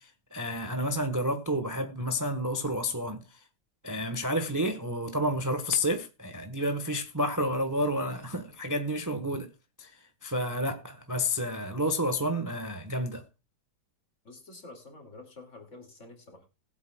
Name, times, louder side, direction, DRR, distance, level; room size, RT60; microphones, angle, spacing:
voice 1, 0.0-3.4 3.8-9.5 9.8-9.9 10.2-13.2, equal, 15° right, 1.0 m, -30 dB
voice 2, 14.2-16.5, left 2 dB, 45° left, 2.7 m, -48 dB
20.0 x 8.2 x 2.3 m
omnidirectional pair, 1.9 m